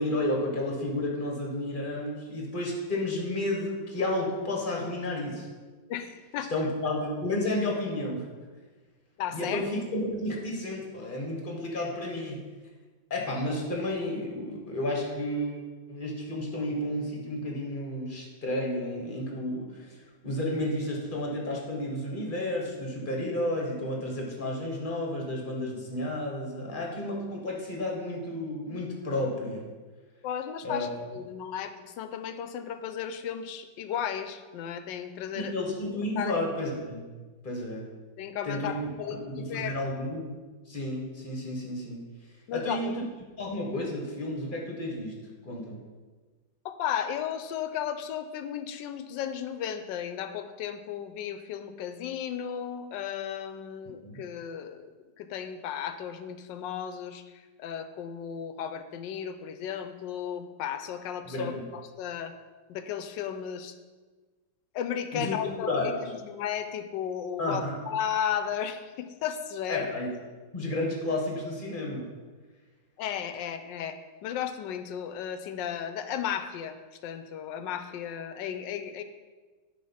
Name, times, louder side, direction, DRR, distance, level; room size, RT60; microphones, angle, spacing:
voice 1, 0.0-5.5 6.5-8.3 9.3-12.4 13.1-15.6 15.9-29.6 30.6-30.9 35.3-37.1 37.4-37.8 38.4-40.4 40.7-42.0 42.5-42.9 43.4-45.8 54.0-54.2 61.3-61.6 65.1-65.4 65.7-65.9 67.4-67.8 69.7-70.1 70.5-72.0, left 1 dB, 30° left, -1 dB, 1.3 m, -32 dB
voice 2, 5.9-6.5 9.2-9.7 30.2-35.5 36.2-36.3 38.2-39.8 42.5-43.0 46.6-54.8 55.2-62.3 62.7-63.7 64.7-69.9 73.0-76.8 77.0-79.0, left 9 dB, 80° left, 9 dB, 1.2 m, -34 dB
9.5 x 3.6 x 5.6 m, 1.3 s
omnidirectional pair, 2.0 m